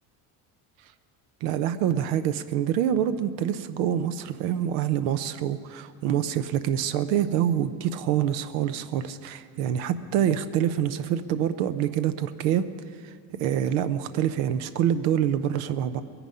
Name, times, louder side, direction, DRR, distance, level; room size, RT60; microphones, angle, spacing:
voice 1, 1.4-12.6 12.9-16.0, right 10 dB, 90° right, 11 dB, 0.7 m, -26 dB
21.0 x 10.0 x 5.5 m, 2.1 s
cardioid pair, 110°, 46 cm